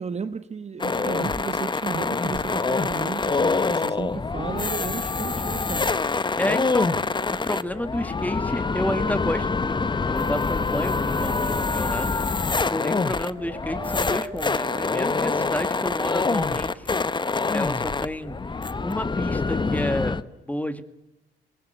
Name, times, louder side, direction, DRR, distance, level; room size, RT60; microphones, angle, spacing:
voice 1, 0.0-5.9, right 5 dB, 35° right, 11 dB, 1.2 m, -34 dB
sound 1, 0.8-20.2, left 4 dB, 25° left, 0.9 m, -25 dB
voice 2, 6.4-7.0 7.3-9.8 10.1-12.1 12.7-17.1 17.5-18.4 18.8-20.2 20.5-20.8, left 1 dB, 10° left, 11 dB, 1.9 m, -30 dB
Dog, 10.2-15.7, right 2 dB, 10° right, 5.9 m, -41 dB
23.0 x 20.0 x 9.4 m, 0.96 s
cardioid pair, 90°, 20 cm